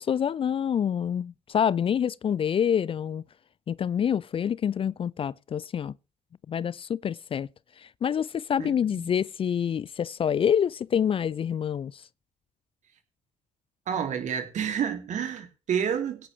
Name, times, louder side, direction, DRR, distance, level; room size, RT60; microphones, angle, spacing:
voice 1, 0.0-3.2 3.7-5.9 6.5-7.5 7.8-12.0, left 8 dB, 35° left, 0.5 m, -27 dB
voice 2, 13.9-16.3, right 8 dB, 55° right, 2.8 m, -29 dB
17.0 x 9.5 x 3.4 m
figure-of-eight pair, 40°, 15 cm